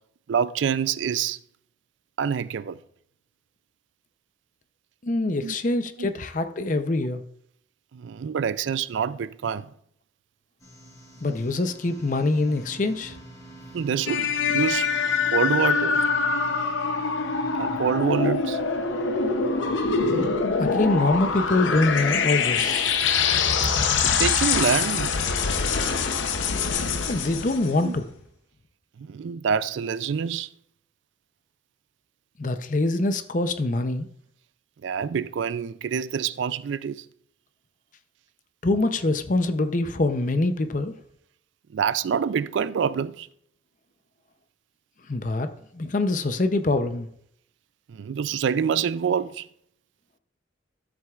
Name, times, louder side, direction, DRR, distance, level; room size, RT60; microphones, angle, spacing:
voice 1, 0.3-1.4 2.2-2.8 5.4-5.6 6.0-6.1 7.9-9.7 13.7-14.9 15.3-16.1 17.6-18.6 24.0-25.2 27.8-28.0 29.0-30.5 34.8-37.0 41.7-43.3 47.9-49.5, right 7 dB, 70° right, 0.4 m, -26 dB
voice 2, 5.0-7.2 11.2-13.2 20.6-22.9 27.1-28.0 32.4-34.1 38.6-40.9 45.1-45.5 45.7-47.1, left 2 dB, 40° left, 0.6 m, -24 dB
sound 1, 10.6-20.3, equal, 20° left, 3.5 m, -42 dB
sound 2, 14.1-27.8, left 5 dB, 75° left, 0.7 m, -24 dB
13.0 x 7.6 x 2.4 m
head